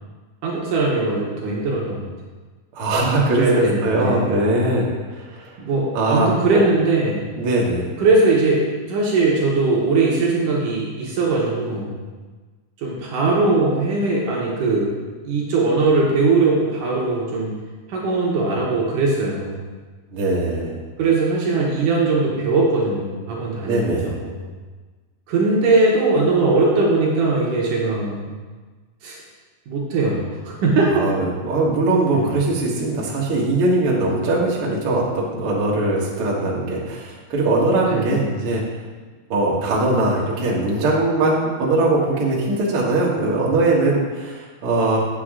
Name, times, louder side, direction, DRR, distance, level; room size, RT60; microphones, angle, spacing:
voice 1, 0.4-2.1 3.3-4.3 5.6-7.3 8.0-12.0 12.8-14.9 15.2-17.5 17.9-19.6 21.0-24.3 25.3-28.3 29.0-29.2 29.7-31.0 32.1-32.2 37.9-38.2, right 3 dB, 65° right, -3 dB, 2.5 m, -20 dB
voice 2, 2.7-5.6 5.9-6.6 7.4-7.9 20.1-20.8 23.6-24.2 30.9-38.6 39.3-45.0, right 2 dB, 50° right, -4 dB, 1.8 m, -21 dB
8.7 x 8.1 x 3.7 m, 1.4 s
omnidirectional pair, 4.5 m